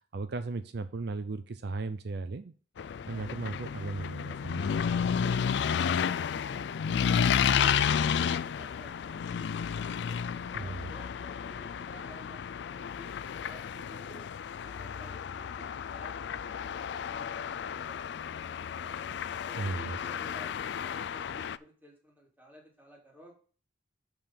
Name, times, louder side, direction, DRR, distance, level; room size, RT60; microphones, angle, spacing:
voice 1, 0.1-2.5 3.1-4.8 10.5-10.9 19.6-20.0, right 3 dB, 65° right, 11 dB, 0.5 m, -36 dB
sound 1, 2.8-21.6, left 7 dB, 70° left, 0.4 m, -32 dB
voice 2, 3.1-3.4 10.1-14.3 14.6-19.1 19.4-23.3, equal, 10° right, -2 dB, 3.0 m, -55 dB
6.9 x 5.7 x 5.7 m, 0.41 s
head